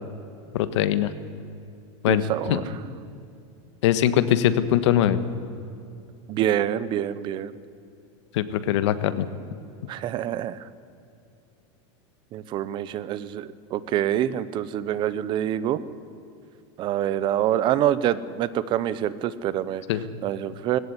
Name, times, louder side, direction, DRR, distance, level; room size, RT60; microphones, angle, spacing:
voice 1, 0.5-1.1 2.0-2.6 3.8-5.2 8.3-9.3 19.9-20.0, left 11 dB, 70° left, 12 dB, 1.5 m, -22 dB
voice 2, 2.1-2.6 6.3-7.5 9.9-10.6 12.3-15.8 16.8-19.8 20.2-20.8, right 11 dB, 30° right, 17 dB, 0.8 m, -26 dB
19.0 x 17.0 x 9.9 m, 2.6 s
supercardioid pair, 160°, 16 cm